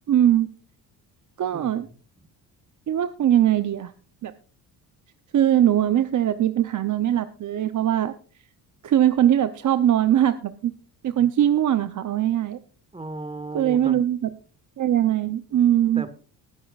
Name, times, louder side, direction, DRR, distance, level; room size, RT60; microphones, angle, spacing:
voice 1, 0.1-0.5 1.4-1.9 2.9-3.9 4.2-4.3 5.3-8.1 8.8-10.7 11.0-12.6 13.5-14.2 14.8-16.0, right 11 dB, 45° right, 11 dB, 0.8 m, -21 dB
voice 2, 1.5-1.9 12.9-14.0 15.9-16.1, right 2 dB, 15° right, 12 dB, 1.4 m, -35 dB
20.5 x 9.9 x 2.4 m, 0.37 s
cardioid pair, 95°, 40 cm